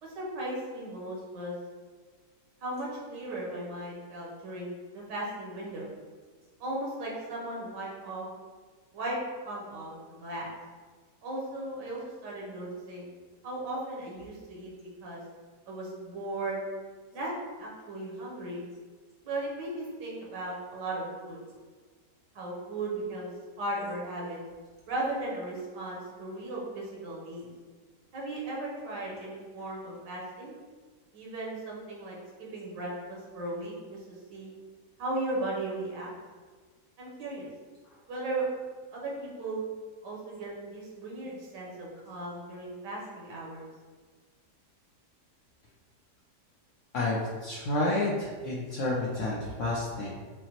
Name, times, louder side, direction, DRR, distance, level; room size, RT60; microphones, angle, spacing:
voice 1, 0.0-1.5 2.6-5.9 6.6-8.3 8.9-9.2 9.4-9.9 10.2-10.5 11.2-13.1 13.4-14.7 15.0-15.2 15.7-16.6 17.1-17.3 17.6-18.7 19.2-21.4 22.3-23.3 23.6-24.4 24.9-27.5 28.1-30.5 31.1-34.5 35.0-36.1 37.0-37.5 38.1-38.4 38.9-39.6 40.0-43.7, right 2 dB, 90° right, -4 dB, 1.6 m, -36 dB
voice 2, 46.9-50.1, left 2 dB, 70° left, -5 dB, 0.7 m, -30 dB
5.6 x 2.1 x 2.8 m, 1.4 s
omnidirectional pair, 1.8 m